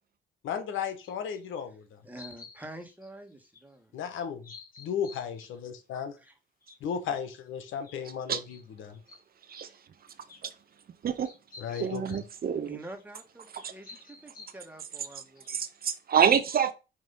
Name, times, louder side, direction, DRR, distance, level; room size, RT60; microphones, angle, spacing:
voice 1, 0.4-2.0 3.9-4.5 4.8-6.2 6.8-9.0 11.6-12.0, left 7 dB, 80° left, 1.2 m, -35 dB
sound 1, 1.0-1.6 2.2-3.6 4.0-4.1 4.4-5.6 6.3-6.4 6.6-6.9 7.4-7.5 7.8-8.6 8.9-9.2 9.5-9.8 10.3-10.4 11.0-12.5 13.0-13.1 13.5-14.6 15.1-15.7, left 4 dB, 45° left, 1.7 m, -51 dB
voice 2, 2.0-3.9 6.2-6.3 11.7-11.9 12.6-15.6, right 1 dB, 10° right, 1.5 m, -47 dB
voice 3, 11.8-12.8 13.5-13.7 15.5-16.7, right 8 dB, 50° right, 0.8 m, -27 dB
5.7 x 3.0 x 5.5 m
cardioid pair, 90°, 20 cm